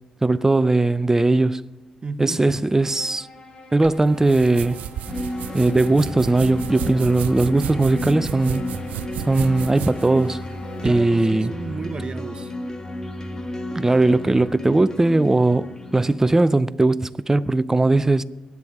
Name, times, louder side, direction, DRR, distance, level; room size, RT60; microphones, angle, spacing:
voice 1, 0.2-1.6 2.2-3.3 3.7-4.8 5.5-8.6 9.3-10.4 10.8-11.5 13.7-18.2, right 2 dB, 20° right, 0.6 m, -19 dB
voice 2, 2.0-2.5 10.8-12.5, right 4 dB, 40° right, 1.0 m, -33 dB
sound 1, 2.8-11.3, left 3 dB, 55° left, 2.4 m, -44 dB
sound 2, 3.8-11.0, right 11 dB, 80° right, 0.5 m, -33 dB
sound 3, 5.1-16.2, left 1 dB, 25° left, 1.9 m, -32 dB
24.5 x 9.7 x 3.6 m
supercardioid pair, 55°, 2 cm